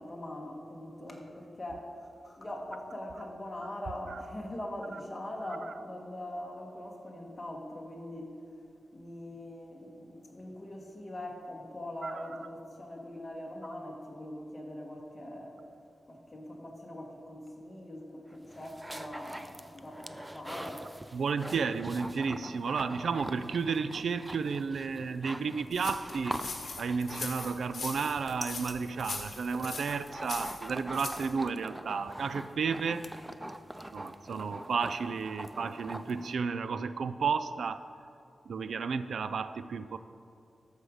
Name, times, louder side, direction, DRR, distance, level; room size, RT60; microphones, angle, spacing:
voice 1, 0.0-1.8 2.2-8.3 8.9-15.6 16.1-20.8, left 1 dB, 20° left, 0 dB, 1.4 m, -42 dB
voice 2, 12.0-12.4 21.1-26.4 26.8-33.1 33.9-37.8 38.5-40.0, right 5 dB, 80° right, 12 dB, 0.3 m, -32 dB
sound 1, 18.3-36.3, right 1 dB, 10° right, 0.4 m, -44 dB
sound 2, 25.7-31.3, left 4 dB, 55° left, 1.2 m, -41 dB
13.0 x 5.0 x 6.4 m, 2.6 s
wide cardioid pair, 170°, 0 cm